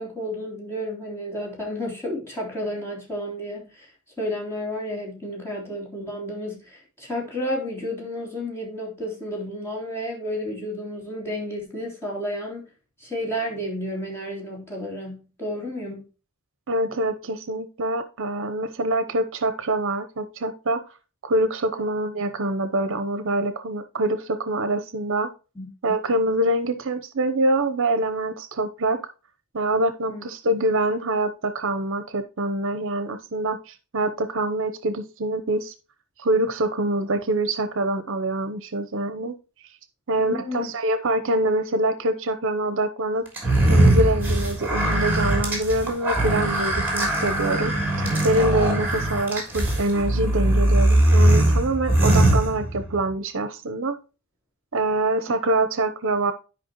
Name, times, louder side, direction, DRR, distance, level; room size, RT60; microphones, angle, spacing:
voice 1, 0.0-3.9 4.2-12.7 13.0-16.0 21.7-21.8 25.5-25.7 30.1-30.2 40.2-40.7 55.3-55.4, equal, 10° left, -3 dB, 3.4 m, -31 dB
voice 2, 16.7-20.8 21.2-25.3 25.8-29.0 29.5-35.7 36.2-39.3 40.1-43.2 43.7-47.7 48.2-54.0 54.7-56.3, right 1 dB, 60° right, 10 dB, 0.8 m, -25 dB
sound 1, 43.4-53.0, right 1 dB, 10° right, 3.1 m, -20 dB
11.5 x 5.4 x 3.0 m, 0.32 s
head